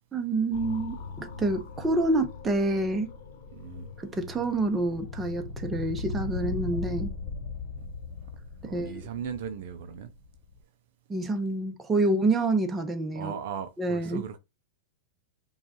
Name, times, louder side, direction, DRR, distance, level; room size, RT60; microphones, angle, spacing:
voice 1, 0.1-3.1 4.0-7.1 8.6-9.1 11.1-13.3 13.8-14.4, right 2 dB, 15° right, 0.8 m, -27 dB
sound 1, 0.5-10.6, left 4 dB, 65° left, 0.9 m, -39 dB
voice 2, 3.5-3.9 8.7-10.1 13.1-14.4, right 8 dB, 65° right, 0.5 m, -37 dB
5.2 x 2.3 x 2.9 m
hypercardioid pair, 105°, 0 cm